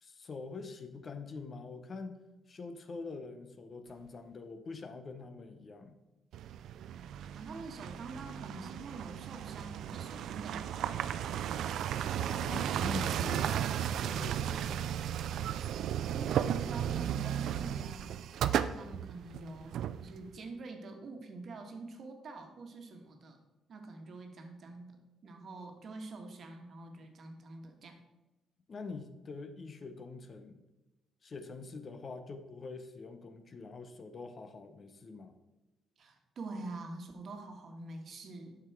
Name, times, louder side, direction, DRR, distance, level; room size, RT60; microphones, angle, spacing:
voice 1, 0.0-6.0 12.2-15.0 28.7-30.6 31.2-35.3, left 4 dB, 45° left, 8 dB, 0.9 m, -45 dB
sound 1, 6.3-20.5, right 10 dB, 75° right, 0.3 m, -35 dB
voice 2, 7.2-11.2 16.0-23.4 23.7-25.0 25.2-27.9 36.0-38.6, right 3 dB, 55° right, 4 dB, 1.4 m, -46 dB
7.8 x 5.9 x 4.7 m, 1.0 s
cardioid pair, 90°, 0 cm